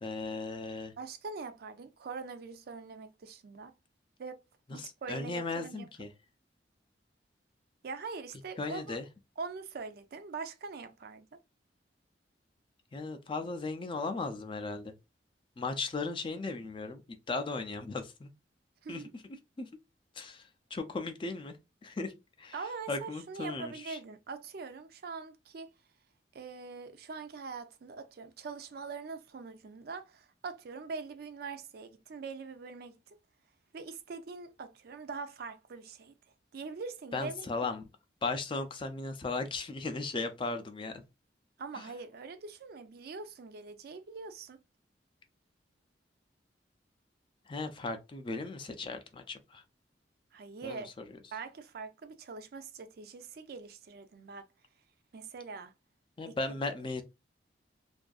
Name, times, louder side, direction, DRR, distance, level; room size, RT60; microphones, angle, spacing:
voice 1, 0.0-0.9 4.7-6.1 8.6-9.1 12.9-14.9 15.6-17.0 17.3-18.3 18.9-19.0 19.6-19.7 20.2-20.4 20.7-21.6 21.8-22.1 22.4-22.5 22.9-24.0 37.1-37.8 38.2-41.0 41.7-41.8 47.5-49.6 50.6-51.0 56.2-57.0, left 3 dB, 30° left, 0.4 m, -36 dB
voice 2, 1.0-3.7 4.2-4.4 4.7-5.9 7.8-9.0 9.4-11.4 18.8-19.1 22.5-25.7 26.3-33.2 33.7-36.2 36.5-37.7 41.6-44.6 50.3-50.9 51.3-54.5 55.1-55.7 56.3-56.4, right 4 dB, 55° right, 0.4 m, -43 dB
2.6 x 2.4 x 2.3 m
head